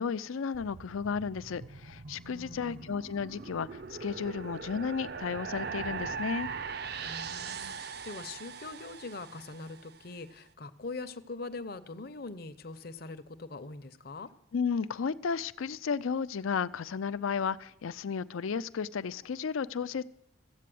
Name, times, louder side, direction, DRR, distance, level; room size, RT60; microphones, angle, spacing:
voice 1, 0.0-6.5 14.5-20.0, left 6 dB, 80° left, 16 dB, 0.5 m, -33 dB
sound 1, 0.5-9.9, right 5 dB, 50° right, 0.5 m, -41 dB
voice 2, 2.2-3.0 7.0-14.3, left 3 dB, 45° left, 11 dB, 0.7 m, -43 dB
14.0 x 8.4 x 7.7 m, 0.82 s
head